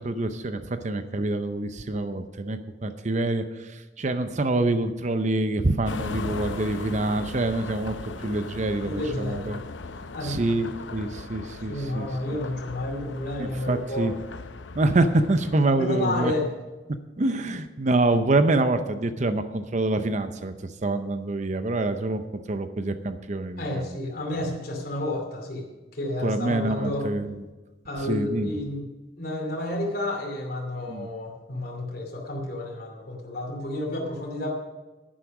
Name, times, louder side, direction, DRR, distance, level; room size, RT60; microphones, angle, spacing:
voice 1, 0.0-9.6 10.2-12.1 13.4-14.1 14.8-16.3 17.2-20.5 20.8-22.2 22.5-23.9 26.2-27.3 28.1-28.6 30.9-31.1, right 2 dB, 40° right, 10 dB, 0.6 m, -26 dB
sound 1, 5.8-15.6, left 3 dB, 85° left, 0.7 m, -38 dB
voice 2, 8.8-9.5 10.1-10.4 11.7-14.1 15.8-16.5 23.6-25.7 25.9-27.1 27.8-28.9 29.2-34.5, left 1 dB, 55° left, -1 dB, 2.6 m, -30 dB
11.0 x 10.0 x 6.1 m, 1.2 s
head